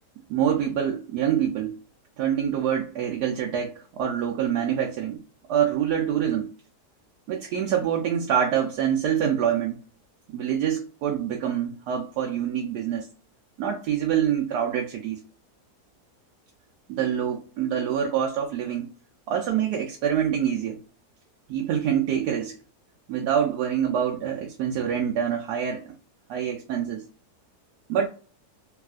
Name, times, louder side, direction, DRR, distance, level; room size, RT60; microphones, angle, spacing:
voice 1, 0.3-1.8 2.2-5.2 5.5-6.5 7.3-9.8 10.3-13.1 13.6-15.2 16.9-18.9 19.3-20.8 21.5-22.6 23.1-25.9 26.3-27.0 27.9-28.1, right 9 dB, 80° right, 1.1 m, -26 dB
3.4 x 2.4 x 2.3 m
omnidirectional pair, 1.7 m